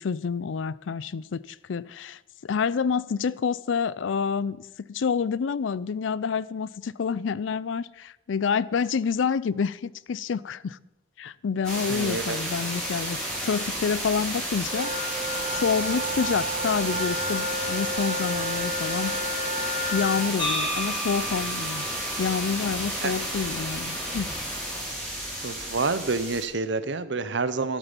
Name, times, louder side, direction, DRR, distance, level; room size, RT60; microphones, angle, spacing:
voice 1, 0.0-10.8 11.2-15.2 15.5-19.1 19.9-21.9 22.2-24.4, left 6 dB, 90° left, 0.4 m, -28 dB
sound 1, 11.6-26.4, right 1 dB, 5° left, 5.3 m, -32 dB
voice 2, 11.9-12.4 23.0-23.1 25.4-27.8, right 3 dB, 70° right, 0.8 m, -28 dB
sound 2, 14.6-20.3, equal, 20° right, 2.2 m, -31 dB
sound 3, 20.4-24.5, equal, 25° left, 5.9 m, -35 dB
12.0 x 11.5 x 5.3 m
head